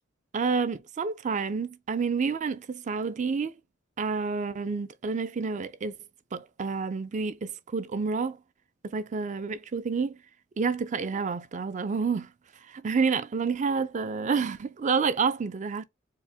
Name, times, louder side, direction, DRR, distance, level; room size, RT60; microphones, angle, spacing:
voice 1, 0.3-3.5 4.0-6.0 6.3-8.4 8.8-10.2 10.6-12.3 12.7-15.8, right 5 dB, 40° right, 0.4 m, -29 dB
4.4 x 2.1 x 3.4 m
head